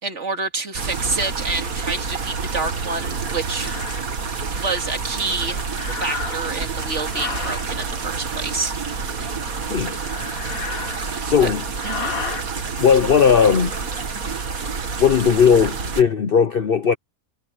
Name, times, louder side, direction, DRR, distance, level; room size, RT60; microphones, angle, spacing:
voice 1, 0.0-3.7 4.6-5.6 6.0-8.8 11.1-11.5 11.8-12.1, right 3 dB, 55° right, 2.8 m, -28 dB
sound 1, 0.7-16.0, right 5 dB, 75° right, 2.2 m, -28 dB
sound 2, 2.6-2.8 3.5-4.0 5.7-6.6 7.1-7.7 9.9-11.3 11.8-12.5, left 5 dB, 75° left, 2.1 m, -32 dB
voice 2, 11.2-11.6 12.8-13.7 15.0-17.0, left 7 dB, 50° left, 0.8 m, -17 dB
omnidirectional pair, 1.5 m